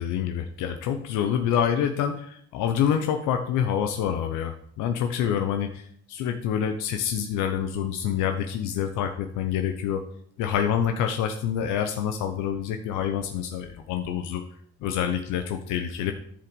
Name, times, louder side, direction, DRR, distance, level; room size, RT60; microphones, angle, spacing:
voice 1, 0.0-10.0 10.4-14.4 14.8-16.1, left 9 dB, 90° left, 6 dB, 0.8 m, -27 dB
10.0 x 5.0 x 5.3 m, 0.63 s
supercardioid pair, 75°, 30 cm